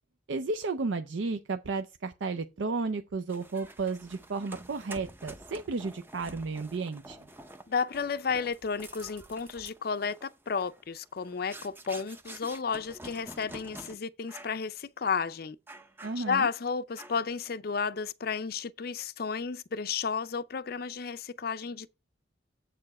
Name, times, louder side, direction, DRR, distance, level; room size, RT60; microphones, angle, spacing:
voice 1, 0.3-7.2 16.0-16.5, right 4 dB, 70° right, 0.5 m, -33 dB
sound 1, 3.3-13.9 14.3-14.6 15.0-15.1 15.7-16.5 17.0-17.4, right 1 dB, 10° right, 0.5 m, -48 dB
voice 2, 7.7-15.6 16.2-21.9, left 5 dB, 50° left, 0.5 m, -32 dB
7.6 x 6.8 x 4.1 m
head